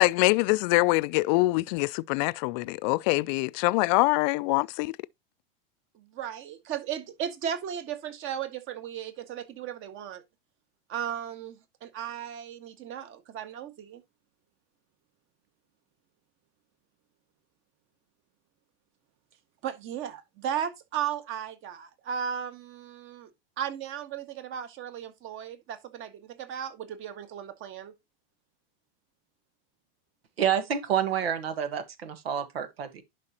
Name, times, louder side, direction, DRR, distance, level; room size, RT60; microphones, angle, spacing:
voice 1, 0.0-5.0, left 23 dB, 50° left, 0.4 m, -24 dB
voice 2, 5.9-10.2 10.9-14.0 19.6-23.3 23.6-27.9, right 9 dB, 45° right, 1.7 m, -35 dB
voice 3, 30.4-33.0, right 9 dB, 85° right, 1.5 m, -28 dB
11.0 x 5.1 x 2.9 m
hypercardioid pair, 110°, 30 cm